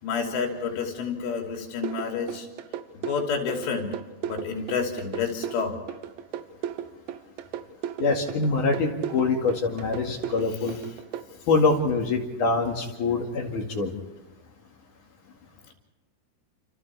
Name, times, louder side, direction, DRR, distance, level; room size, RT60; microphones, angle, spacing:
voice 1, 0.0-2.5 3.0-3.9 4.3-5.8, left 5 dB, 85° left, 1 dB, 5.5 m, -29 dB
sound 1, 1.8-11.2, right 10 dB, 80° right, 2.2 m, -35 dB
voice 2, 8.0-10.8 11.5-13.9, left 3 dB, 50° left, 1 dB, 3.0 m, -24 dB
29.0 x 28.5 x 3.5 m, 1.1 s
omnidirectional pair, 5.4 m